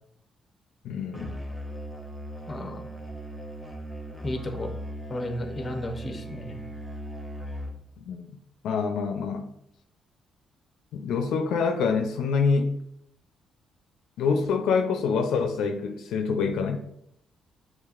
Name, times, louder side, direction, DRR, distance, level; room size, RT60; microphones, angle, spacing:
voice 1, 0.8-1.4 8.0-8.3 8.6-9.5 10.9-12.8 14.2-16.8, left 5 dB, 85° left, 5 dB, 0.5 m, -26 dB
Musical instrument, 1.1-7.9, right 1 dB, 5° right, 0.7 m, -38 dB
voice 2, 2.5-2.9 4.2-4.7 5.1-6.6, left 1 dB, 25° left, 5 dB, 0.7 m, -33 dB
6.4 x 3.1 x 2.4 m, 0.74 s
cardioid pair, 90°, 0 cm